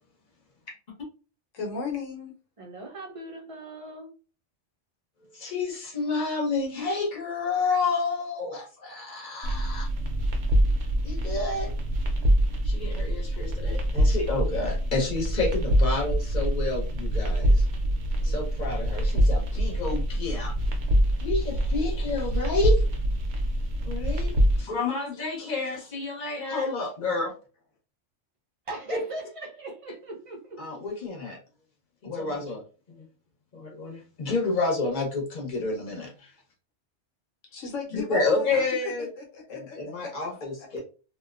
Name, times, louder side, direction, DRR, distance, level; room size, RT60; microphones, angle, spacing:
voice 1, 1.5-2.4 37.5-40.3, left 5 dB, 90° left, 0 dB, 1.2 m, -36 dB
voice 2, 2.6-4.1 28.7-30.6, right 2 dB, 40° right, 0 dB, 0.5 m, -39 dB
voice 3, 5.4-9.9 11.0-11.7 12.6-17.6 18.2-20.5 21.2-22.8 23.8-27.3 28.9-29.0 30.6-31.4 32.0-32.6 32.9-33.0 33.5-36.3 37.9-39.1 39.6-40.8, left 3 dB, 45° left, -1 dB, 1.1 m, -29 dB
sound 1, 9.4-24.6, equal, 65° right, 0.8 m, -25 dB
2.6 x 2.1 x 2.3 m, 0.36 s
omnidirectional pair, 1.2 m